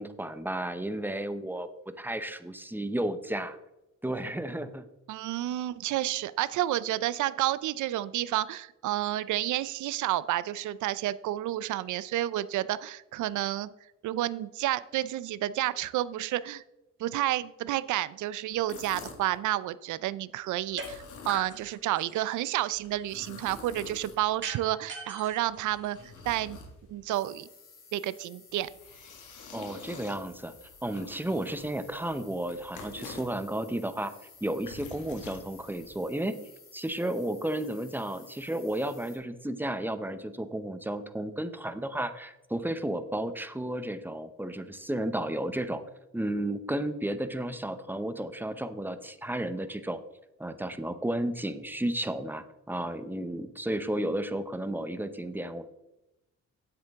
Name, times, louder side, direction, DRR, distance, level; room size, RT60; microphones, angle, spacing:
voice 1, 0.0-1.7 2.0-3.6 4.0-4.9 29.5-30.5 30.8-34.1 34.4-36.3 36.7-45.8 46.1-50.0 50.4-55.6, right 1 dB, 5° right, 10 dB, 0.8 m, -33 dB
voice 2, 5.1-13.7 14.0-16.6 17.0-26.0 26.3-26.6 26.9-27.5 27.9-28.7, right 14 dB, 80° right, 17 dB, 0.6 m, -30 dB
sound 1, 18.5-19.4 20.7-21.7 22.7-24.5 25.2-27.1 28.5-33.4 34.3-36.0, left 4 dB, 80° left, 1.9 m, -48 dB
sound 2, 20.8-20.9 21.3-22.5 24.4-26.4, right 3 dB, 40° right, 2.7 m, -41 dB
sound 3, 27.1-39.2, left 5 dB, 65° left, 3.2 m, -55 dB
9.7 x 8.1 x 3.6 m, 0.93 s
cardioid pair, 90°, 30 cm